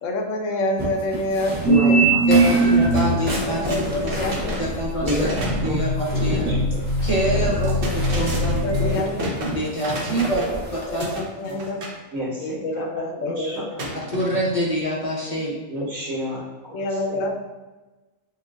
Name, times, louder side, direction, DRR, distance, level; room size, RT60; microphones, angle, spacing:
voice 1, 0.0-2.1 3.4-4.6 5.2-5.3 7.3-7.4 8.4-9.3 10.3-10.5 10.9-11.8 12.4-13.9 16.7-17.3, left 2 dB, 75° left, 3 dB, 0.9 m, -27 dB
sound 1, 0.8-11.2, right 2 dB, 10° right, 0.6 m, -32 dB
sound 2, 1.6-3.3 4.0-8.9, right 2 dB, 70° right, 1.4 m, -21 dB
voice 2, 1.6-2.8 5.0-5.9 6.2-6.6 7.6-7.9 12.1-13.6 15.7-17.3, equal, 90° right, -6 dB, 1.9 m, -30 dB
sound 3, 2.2-2.4 2.7-5.8 7.4-10.6 11.0-12.0 13.8-14.7, right 1 dB, 50° right, 0.8 m, -32 dB
voice 3, 2.3-3.8 4.0-4.2 4.6-5.3 5.6-6.5 7.0-9.0 9.4-11.1 11.5-11.6 14.1-15.6, right 1 dB, 30° left, -5 dB, 0.7 m, -26 dB
6.7 x 2.3 x 2.4 m, 1.1 s
omnidirectional pair, 1.3 m